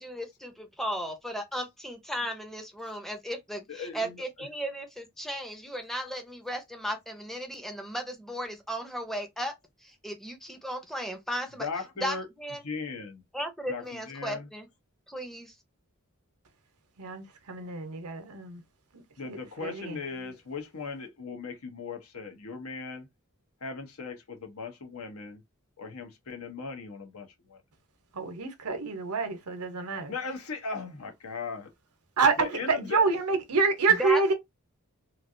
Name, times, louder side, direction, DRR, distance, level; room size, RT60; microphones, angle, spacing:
voice 1, 0.0-9.5 9.8-11.7 12.0-12.6 13.3-14.7 15.1-15.5 33.9-34.3, equal, ahead, 0.6 m, -35 dB
voice 2, 3.7-4.2 11.6-12.3 12.6-13.2 13.7-14.5 19.2-23.1 23.6-25.4 25.8-27.6 30.1-31.7 32.4-33.0, left 4 dB, 70° left, 0.9 m, -38 dB
voice 3, 17.0-18.6 19.2-20.0 28.1-30.1 32.2-34.3, right 4 dB, 90° right, 0.9 m, -27 dB
3.2 x 2.4 x 2.5 m
head